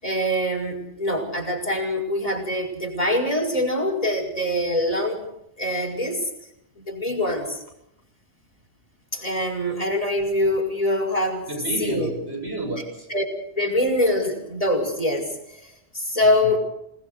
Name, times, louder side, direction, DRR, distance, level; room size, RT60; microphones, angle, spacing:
voice 1, 0.0-5.2 5.6-6.3 6.8-7.6 9.1-11.5 11.8-12.1 13.1-13.2 13.5-16.6, left 1 dB, 30° left, 1 dB, 5.9 m, -24 dB
voice 2, 11.5-13.1 16.2-16.6, right 2 dB, 60° right, 2 dB, 7.1 m, -31 dB
28.0 x 20.0 x 6.8 m, 0.77 s
omnidirectional pair, 1.2 m